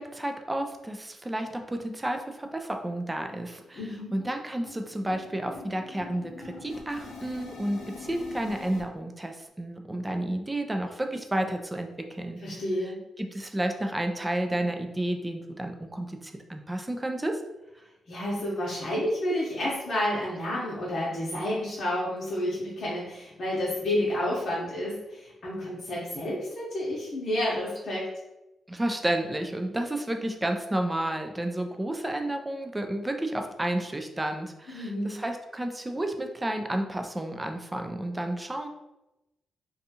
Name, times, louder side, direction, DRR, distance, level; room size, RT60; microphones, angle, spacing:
voice 1, 0.0-12.4 12.7-17.4 28.7-38.7, right 1 dB, 15° right, 5 dB, 0.3 m, -31 dB
sound 1, 2.0-2.1 2.4-2.6 2.9-8.8, left 3 dB, 90° left, 0.5 m, -45 dB
voice 2, 3.8-4.1 12.4-13.0 18.1-28.0 34.7-35.1, left 1 dB, 55° left, -6 dB, 0.8 m, -30 dB
2.6 x 2.3 x 2.7 m, 0.95 s
cardioid pair, 85°, 0 cm